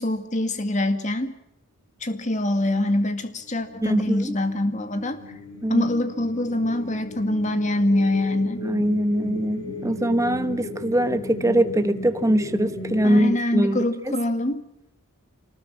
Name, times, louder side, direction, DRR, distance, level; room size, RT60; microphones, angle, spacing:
voice 1, 0.0-1.3 2.0-5.2 5.7-8.6 13.0-14.6, left 1 dB, 35° left, 2.2 m, -24 dB
sound 1, 3.2-13.2, left 1 dB, 80° left, 7.2 m, -36 dB
voice 2, 3.8-4.4 5.6-5.9 8.6-14.2, right 1 dB, 15° right, 1.1 m, -22 dB
26.5 x 19.5 x 7.4 m
head